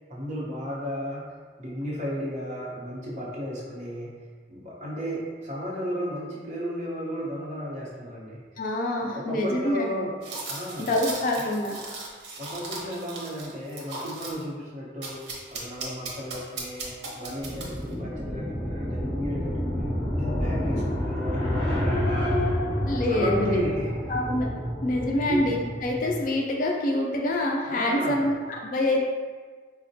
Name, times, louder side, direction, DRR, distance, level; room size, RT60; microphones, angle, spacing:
voice 1, 0.1-1.3 1.6-4.2 4.5-8.4 8.9-10.2 10.5-10.9 11.4-11.5 12.4-22.3 23.1-23.9 25.2-25.5 27.7-28.3, equal, 40° right, -6 dB, 0.7 m, -34 dB
voice 2, 8.6-9.9 10.8-11.7 22.8-23.6 24.1-24.5 24.8-29.1, left 1 dB, 45° left, 0 dB, 0.4 m, -26 dB
sound 1, 10.2-14.4 15.0-17.9, right 2 dB, 85° right, 0.6 m, -37 dB
sound 2, 17.4-26.2, equal, 5° left, 1.4 m, -29 dB
4.0 x 2.1 x 2.6 m, 1.5 s
head